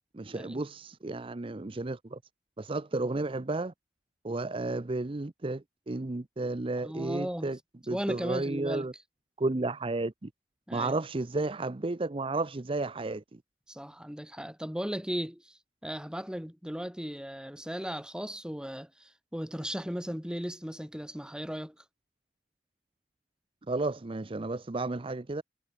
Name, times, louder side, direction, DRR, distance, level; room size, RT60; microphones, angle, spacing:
voice 1, 0.1-2.2 2.6-3.7 4.2-7.6 7.9-8.9 9.4-10.3 10.7-13.4 23.7-25.4, right 2 dB, 30° right, 0.6 m, -32 dB
voice 2, 6.7-7.5 7.9-8.9 10.7-11.0 13.7-21.8, equal, 5° right, 2.6 m, -37 dB
head